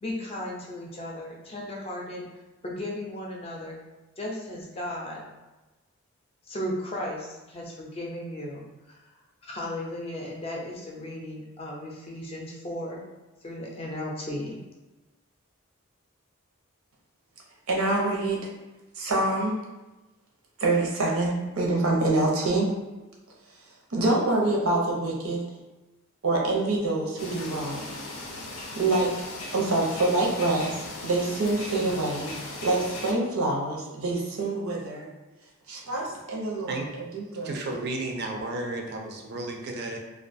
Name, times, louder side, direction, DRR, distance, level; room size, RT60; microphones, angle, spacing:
voice 1, 0.0-2.3 2.6-3.8 4.2-5.2 6.5-9.0 9.4-13.1 13.4-14.6, left 1 dB, 25° left, -2 dB, 0.4 m, -35 dB
voice 2, 17.7-18.4 19.0-19.5 20.6-22.7 23.9-25.4 26.2-27.9 28.7-29.1 29.5-32.3 32.6-35.1 35.7-36.8 37.1-37.6, right 2 dB, 85° right, -2 dB, 0.6 m, -26 dB
sound 1, 27.2-33.1, left 2 dB, 85° left, 0.5 m, -38 dB
voice 3, 37.4-40.0, right 2 dB, 50° right, 2 dB, 0.3 m, -33 dB
2.3 x 2.2 x 2.5 m, 1.1 s
head